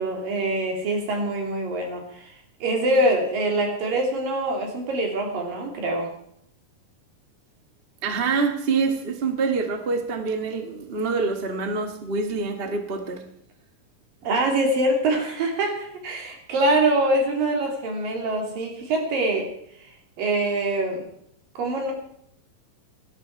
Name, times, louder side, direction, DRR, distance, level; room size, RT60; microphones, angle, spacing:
voice 1, 0.0-2.3 2.6-6.1 14.2-19.5 20.2-21.0 21.6-21.9, right 2 dB, 80° right, 1 dB, 4.8 m, -24 dB
voice 2, 8.0-13.3, right 4 dB, 30° right, 6 dB, 1.1 m, -26 dB
17.5 x 13.0 x 4.7 m, 0.70 s
omnidirectional pair, 3.9 m